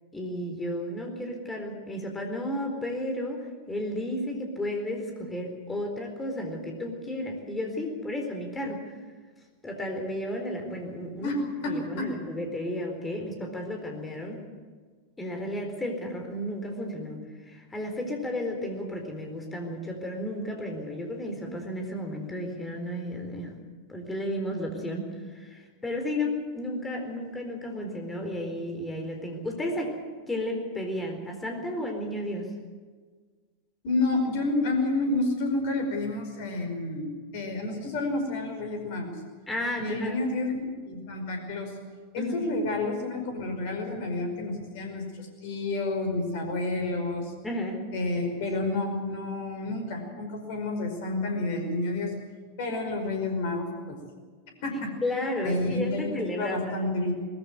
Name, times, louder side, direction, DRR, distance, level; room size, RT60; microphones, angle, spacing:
voice 1, 0.1-8.8 9.6-11.3 11.6-14.4 15.2-23.5 23.9-25.0 25.3-30.0 30.3-32.5 39.5-40.2 42.2-42.5 47.4-47.8 55.0-56.9, left 1 dB, 10° left, 3 dB, 4.2 m, -33 dB
voice 2, 11.2-12.1 33.8-39.1 39.8-41.8 42.1-47.3 47.9-52.1 52.6-54.0 54.6-55.0 55.4-56.1 56.4-57.1, left 2 dB, 50° left, 4 dB, 5.1 m, -30 dB
20.5 x 14.5 x 9.6 m, 1.5 s
figure-of-eight pair, 90°, 0 cm